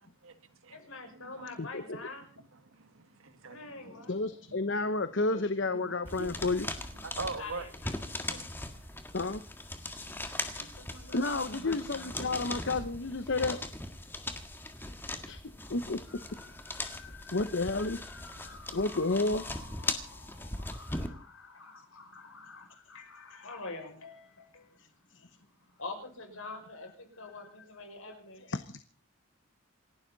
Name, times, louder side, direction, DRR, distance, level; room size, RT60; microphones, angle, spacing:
voice 1, 0.7-2.3 3.4-4.3 7.4-8.0 8.2-9.1 10.6-12.2 14.8-15.0 15.6-15.7 16.1-28.5, left 3 dB, 75° left, 6.1 m, -47 dB
voice 2, 1.6-2.0 4.1-6.7 9.1-9.4 11.1-13.6 15.3-15.4 15.7-16.0 17.3-18.0 18.7-19.4 25.1-25.3 28.5-28.8, left 3 dB, 55° left, 0.9 m, -31 dB
voice 3, 2.7-4.2 4.5-4.6 5.3-5.4 5.8-6.4 7.0-7.7 8.3-8.5, right 3 dB, 75° right, 1.9 m, -42 dB
sound 1, 6.1-21.1, left 2 dB, 10° left, 1.6 m, -40 dB
28.0 x 12.0 x 4.1 m
head